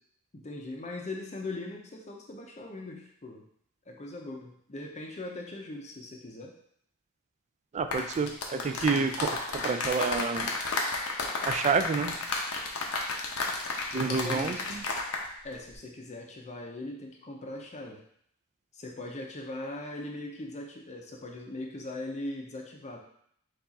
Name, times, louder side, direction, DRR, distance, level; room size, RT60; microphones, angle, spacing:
voice 1, 0.3-3.5 3.9-6.5 13.9-14.8 15.4-18.0 18.7-23.0, left 2 dB, 30° left, 1 dB, 0.6 m, -40 dB
voice 2, 7.7-10.5 11.5-12.2 13.9-14.8, right 4 dB, 30° right, 8 dB, 0.3 m, -29 dB
sound 1, 7.8-15.3 15.5-15.8, left 3 dB, 75° left, 0.7 m, -32 dB
4.7 x 2.5 x 4.0 m, 0.69 s
head